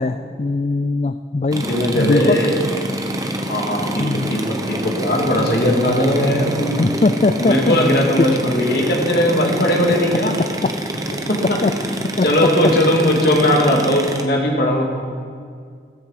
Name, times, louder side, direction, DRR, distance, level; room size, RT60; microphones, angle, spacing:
voice 1, 0.0-1.7 1.9-2.4 4.0-4.3 6.8-7.8 8.2-8.3 9.8-9.9 11.6-11.7 12.2-12.3, left 3 dB, 35° left, 8 dB, 0.4 m, -19 dB
sound 1, 1.5-14.2, right 1 dB, 20° right, 0.9 m, -26 dB
voice 2, 1.6-2.6 3.5-6.8 7.4-10.3 11.3-11.6 12.2-14.8, left 1 dB, 55° left, 0 dB, 2.3 m, -18 dB
14.5 x 13.5 x 5.0 m, 2.1 s
head